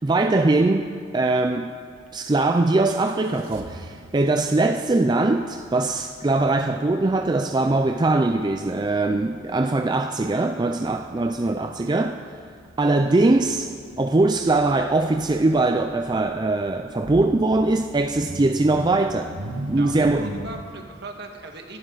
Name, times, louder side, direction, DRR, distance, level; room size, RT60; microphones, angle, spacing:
voice 1, 0.0-1.7 2.1-12.2 12.8-13.7 14.0-19.3 19.7-20.3, right 2 dB, 20° right, 6 dB, 0.4 m, -21 dB
sound 1, 2.0-2.1 2.9-20.6, right 1 dB, 85° right, 1.2 m, -41 dB
voice 2, 19.7-21.8, right 2 dB, 55° right, 3 dB, 1.7 m, -38 dB
23.5 x 11.5 x 4.0 m, 2.2 s
head